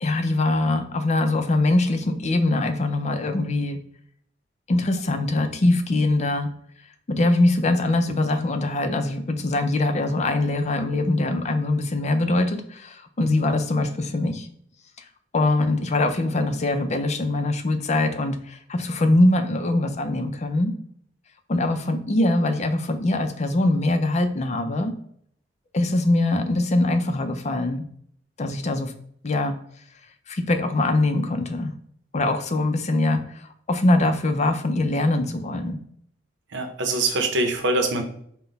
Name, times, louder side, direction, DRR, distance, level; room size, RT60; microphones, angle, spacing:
voice 1, 0.0-3.8 4.7-6.5 7.1-14.5 15.3-20.7 21.5-24.9 25.7-27.8 28.4-28.9 29.2-29.5 30.3-31.7 32.1-33.2 33.7-35.8, left 2 dB, 40° left, 7 dB, 0.5 m, -22 dB
voice 2, 36.5-38.0, right 2 dB, 75° right, 5 dB, 0.8 m, -23 dB
5.8 x 2.2 x 3.9 m, 0.66 s
head